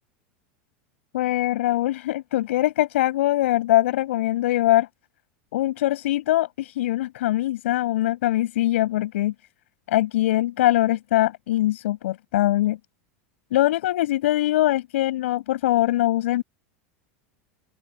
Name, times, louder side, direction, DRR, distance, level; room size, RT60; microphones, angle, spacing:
voice 1, 1.1-4.9 5.5-9.3 9.9-12.8 13.5-16.4, left 15 dB, 80° left, 7.2 m, -22 dB
open air
supercardioid pair, 110°, 7 cm